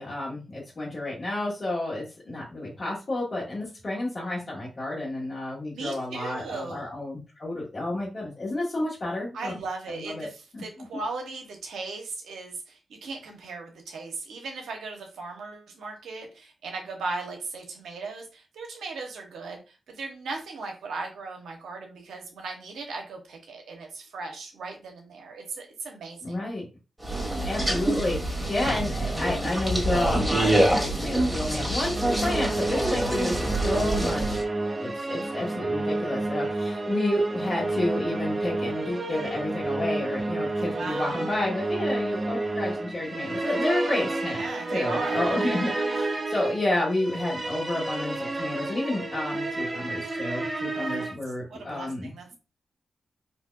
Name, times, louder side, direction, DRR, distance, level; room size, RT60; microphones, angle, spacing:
voice 1, 0.0-9.5 9.9-10.3 10.5-10.9 26.2-26.6 27.4-34.4 34.8-44.4 44.7-52.3, left 2 dB, 55° left, -7 dB, 1.3 m, -30 dB
voice 2, 5.7-6.8 9.3-26.4 40.6-41.4 44.3-45.3 50.7-51.1 51.5-52.3, right 3 dB, 85° right, 2 dB, 0.9 m, -37 dB
sound 1, 27.0-34.4, right 1 dB, 15° right, 1.6 m, -26 dB
sound 2, 31.9-51.1, right 2 dB, 55° right, 1.2 m, -30 dB
4.2 x 2.7 x 2.3 m, 0.32 s
supercardioid pair, 45°, 0 cm